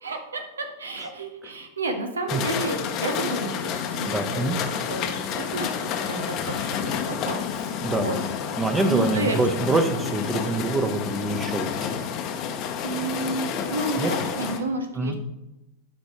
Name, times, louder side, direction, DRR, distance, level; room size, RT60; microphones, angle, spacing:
voice 1, 0.0-6.8 7.0-8.2 8.9-9.4 12.8-15.1, right 2 dB, 70° right, 5 dB, 0.9 m, -31 dB
sound 1, 2.3-14.6, left 7 dB, 40° left, 0.9 m, -29 dB
voice 2, 4.1-4.6 7.8-8.1 8.6-11.7 14.0-14.1 15.0-15.1, right 2 dB, 15° right, 6 dB, 0.9 m, -25 dB
11.5 x 5.3 x 3.0 m, 0.97 s
figure-of-eight pair, 90°, 0 cm